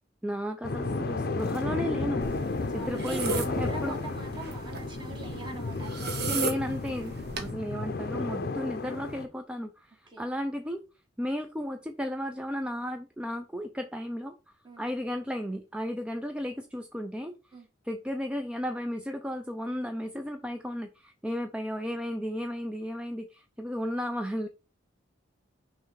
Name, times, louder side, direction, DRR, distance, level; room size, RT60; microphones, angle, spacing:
voice 1, 0.2-4.0 6.2-10.8 11.2-14.3 14.8-17.3 17.9-24.5, equal, 5° right, 0.5 m, -34 dB
sound 1, 0.6-9.3, left 3 dB, 55° left, 0.6 m, -33 dB
sound 2, 2.2-7.5, right 3 dB, 60° right, 1.2 m, -36 dB
voice 2, 2.7-6.5 10.1-10.3 14.6-14.9 17.5-17.7, right 2 dB, 25° right, 1.8 m, -43 dB
6.2 x 3.2 x 5.7 m
head